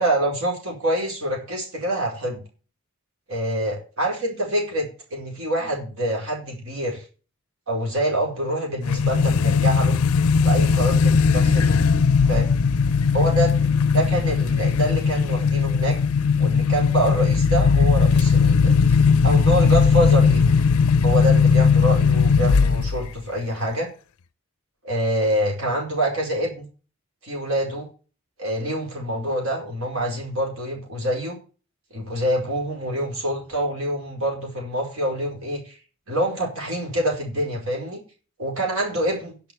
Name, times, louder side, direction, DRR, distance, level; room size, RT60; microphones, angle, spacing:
voice 1, 0.0-2.4 3.3-7.0 7.7-10.0 10.4-11.8 12.2-12.5 13.1-13.5 13.9-16.0 16.4-18.7 19.2-20.5 21.0-23.9 24.8-26.7 27.2-27.9 28.4-31.4 31.9-35.8 36.1-38.0 38.4-39.3, right 1 dB, 75° right, -1 dB, 4.8 m, -26 dB
sound 1, 8.8-23.1, left 5 dB, 85° left, 0.5 m, -18 dB
10.5 x 6.6 x 7.9 m, 0.36 s
head